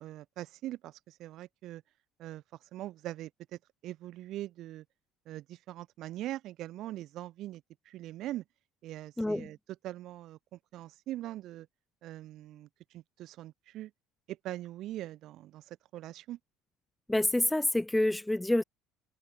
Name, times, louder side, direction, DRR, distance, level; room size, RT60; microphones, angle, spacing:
voice 1, 0.0-1.8 2.2-4.8 5.3-8.4 8.8-9.6 9.8-11.7 12.0-13.9 14.3-16.4, right 14 dB, 60° right, 3.8 m, -42 dB
voice 2, 9.2-9.5 17.1-18.6, left 1 dB, 5° left, 0.9 m, -27 dB
cardioid pair, 120°, 0 cm